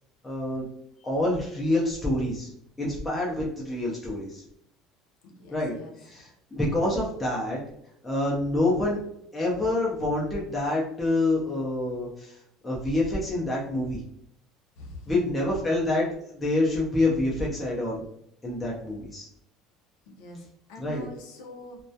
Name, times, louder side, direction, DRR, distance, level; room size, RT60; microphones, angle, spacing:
voice 1, 0.2-0.7 1.0-2.5 2.8-4.4 5.5-5.7 6.0-7.6 8.0-9.0 9.3-12.4 12.6-14.0 15.1-18.1 18.4-19.3 20.8-21.0, left 2 dB, 10° left, -4 dB, 0.4 m, -27 dB
voice 2, 5.2-6.0 14.8-15.6 20.1-21.8, left 2 dB, 85° left, 1 dB, 0.5 m, -44 dB
2.2 x 2.1 x 2.6 m, 0.71 s
cardioid pair, 175°, 0 cm